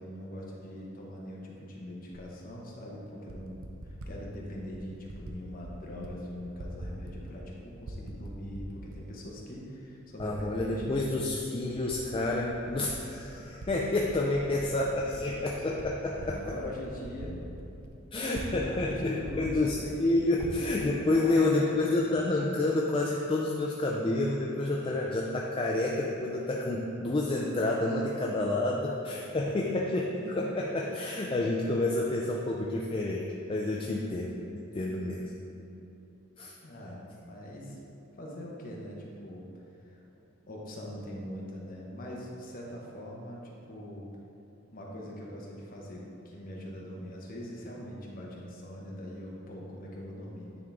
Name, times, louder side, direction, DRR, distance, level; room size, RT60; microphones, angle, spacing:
voice 1, 0.0-11.0 16.0-17.8 18.6-20.0 20.2-20.7 21.0-22.1 24.8-24.9 29.6-30.0 30.2-30.4 33.7-34.0 36.6-37.8 38.1-39.5 39.8-40.0 40.5-44.1 44.7-50.5, equal, 45° left, -3 dB, 1.0 m, -42 dB
Typing, 2.1-2.3 3.1-4.2 4.7-5.4 5.6-6.1 6.4-7.5 7.8-9.0 9.5-9.6 10.2-11.0 11.3-13.7 14.0-18.6 18.9-19.0 19.2-20.6, right 1 dB, 75° right, 0.6 m, -43 dB
voice 2, 10.2-16.4 18.1-33.2 33.5-34.3 34.7-35.3 36.4-36.5, left 2 dB, 25° left, -2 dB, 0.3 m, -29 dB
9.4 x 3.8 x 3.5 m, 2.9 s
head